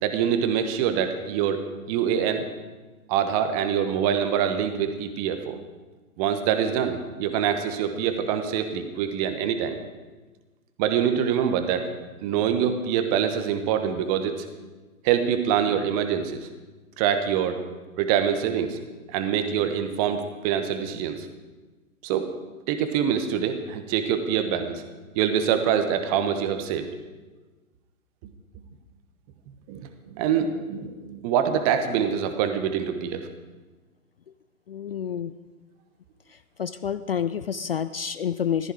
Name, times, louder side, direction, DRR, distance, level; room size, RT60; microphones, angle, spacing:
voice 1, 0.0-2.5 3.1-5.6 6.2-9.8 10.8-11.9 12.2-14.4 15.0-16.5 17.0-17.6 18.0-18.8 19.1-21.3 22.0-22.3 22.7-24.8 25.1-26.9 29.7-29.9 30.1-33.3, right 8 dB, 25° right, 8 dB, 1.3 m, -25 dB
voice 2, 34.7-35.3 36.6-38.7, left 8 dB, 45° left, 13 dB, 0.4 m, -28 dB
15.0 x 14.0 x 4.9 m, 1.3 s
figure-of-eight pair, 120°, 44 cm